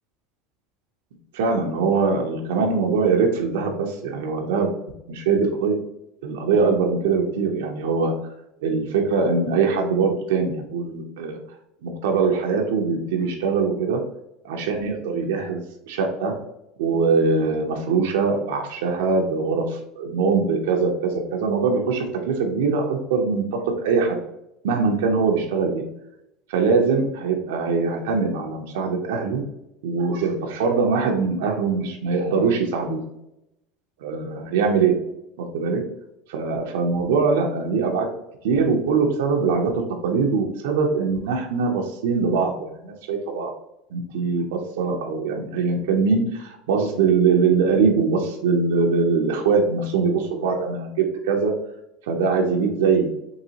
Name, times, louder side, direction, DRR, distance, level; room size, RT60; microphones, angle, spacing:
voice 1, 1.3-4.7 5.1-5.7 6.2-8.1 8.6-11.4 11.8-14.0 14.4-16.3 16.8-24.2 24.6-25.8 26.5-29.4 29.8-33.0 34.0-34.9 35.4-35.8 36.3-38.1 38.4-43.5 43.9-51.5 52.1-53.1, right 5 dB, 85° right, 2 dB, 0.6 m, -22 dB
3.9 x 2.7 x 2.7 m, 0.83 s
supercardioid pair, 110°, 0 cm